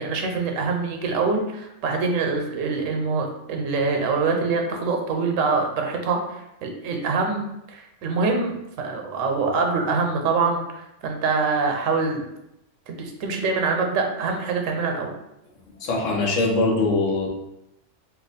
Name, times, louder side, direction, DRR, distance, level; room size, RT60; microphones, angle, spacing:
voice 1, 0.0-12.2 12.9-15.1, right 4 dB, 90° right, 3 dB, 1.0 m, -25 dB
voice 2, 15.8-17.3, left 2 dB, 80° left, 0 dB, 1.1 m, -22 dB
2.9 x 2.3 x 4.0 m, 0.87 s
omnidirectional pair, 1.3 m